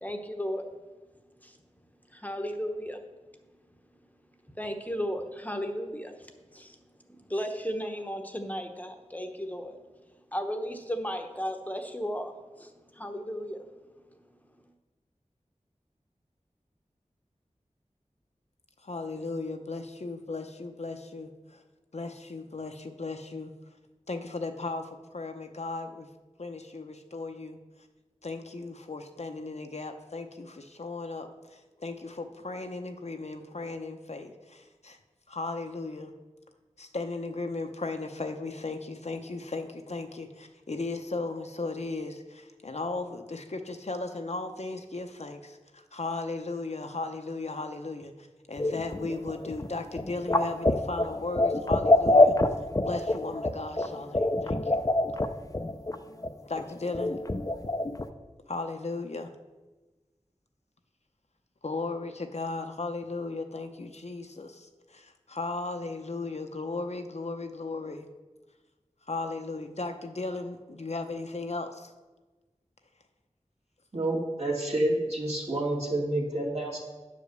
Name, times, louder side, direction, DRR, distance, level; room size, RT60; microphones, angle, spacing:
voice 1, 0.0-0.6 1.4-1.6 2.1-3.0 4.5-9.8 10.3-13.9 14.5-14.7, equal, 15° left, 5 dB, 0.9 m, -35 dB
voice 2, 18.8-21.6 21.9-23.5 24.1-26.1 26.4-27.6 28.2-35.0 35.3-36.1 36.8-52.4 52.8-54.8 56.4-57.1 58.5-59.3 61.6-68.1 69.1-71.9, left 3 dB, 60° left, 6 dB, 0.8 m, -36 dB
sound 1, 48.6-55.9 56.2-56.3 56.6-56.7 56.9-58.0, left 2 dB, 30° left, 0.6 m, -25 dB
voice 3, 73.9-76.8, right 1 dB, 60° right, -3 dB, 2.3 m, -29 dB
9.5 x 5.0 x 6.7 m, 1.2 s
wide cardioid pair, 50°, 12 cm